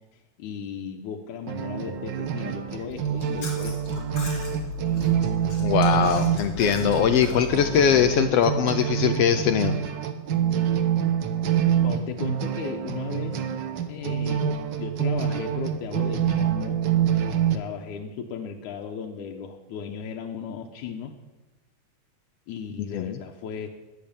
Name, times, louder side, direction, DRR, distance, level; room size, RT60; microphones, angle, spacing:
voice 1, 0.1-4.1 10.8-11.2 11.7-13.5 13.9-16.8 17.5-21.2 22.5-23.7, left 7 dB, 90° left, 2 dB, 2.4 m, -36 dB
sound 1, 1.5-17.6, right 9 dB, 75° right, 1.0 m, -26 dB
Chewing mastication, 2.9-8.2, left 4 dB, 50° left, 3.8 m, -36 dB
voice 2, 5.6-9.7 22.9-23.2, left 8 dB, 75° left, 9 dB, 1.6 m, -21 dB
12.5 x 10.5 x 8.8 m, 1.1 s
omnidirectional pair, 3.4 m